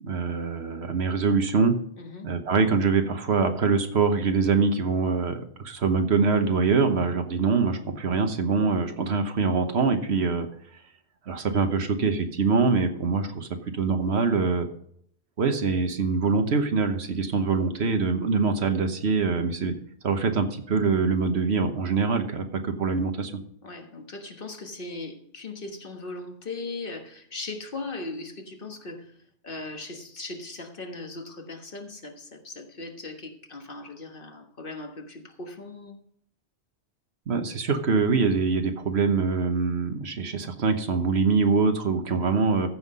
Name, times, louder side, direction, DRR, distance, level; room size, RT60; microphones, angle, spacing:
voice 1, 0.0-1.8 2.2-10.5 11.3-13.5 13.7-14.7 15.4-19.8 20.0-23.3 37.3-42.7, right 4 dB, 70° right, 7 dB, 1.4 m, -24 dB
voice 2, 2.0-2.3 23.6-29.1 29.4-36.0, left 3 dB, 50° left, 4 dB, 1.5 m, -38 dB
14.5 x 5.8 x 5.4 m, 0.66 s
omnidirectional pair, 1.2 m